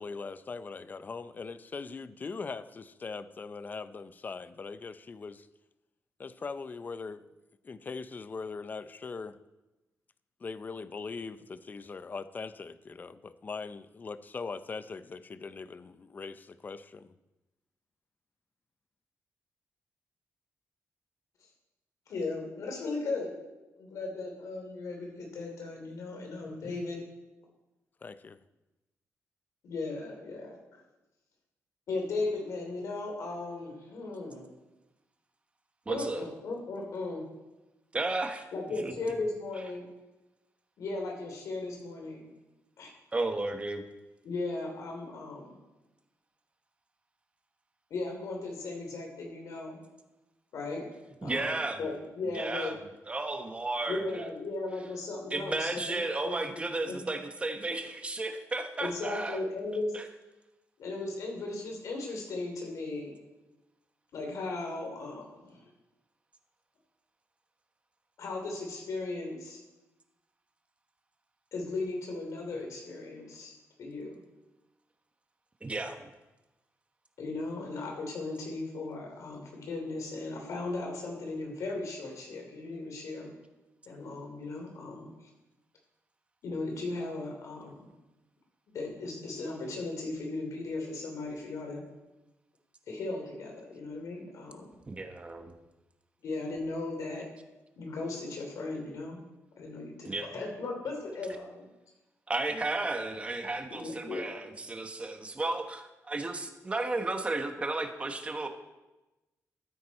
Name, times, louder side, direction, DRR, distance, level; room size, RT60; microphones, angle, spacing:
voice 1, 0.0-5.5 6.2-7.3 7.6-9.4 10.4-17.1 28.0-28.4, left 4 dB, 35° left, 14 dB, 0.5 m, -41 dB
voice 2, 22.1-23.3 23.7-27.0 29.6-30.8 31.9-34.4 35.9-37.2 38.5-39.9 40.8-42.3 42.8-42.9 44.2-45.6 47.9-49.8 50.5-50.9 51.2-51.5 51.8-52.7 53.9-56.6 56.9-57.0 58.8-59.9 60.8-63.1 64.1-65.7 68.2-69.6 71.5-74.2 77.2-83.3 83.9-85.1 86.4-87.8 88.7-91.8 92.9-94.7 96.2-97.3 97.8-99.2 99.6-101.7 103.7-104.4, left 3 dB, 80° left, 1 dB, 3.2 m, -37 dB
voice 3, 35.9-36.2 37.9-38.4 38.8-38.9 43.1-43.8 51.2-51.8 52.3-52.8 53.1-54.3 55.3-59.4 59.9-60.0 75.6-76.1 87.7-87.8 94.9-95.5 100.0-100.3 102.3-108.5, right 2 dB, 20° right, 6 dB, 1.1 m, -33 dB
13.5 x 9.3 x 4.2 m, 1.0 s
wide cardioid pair, 130°, 6 cm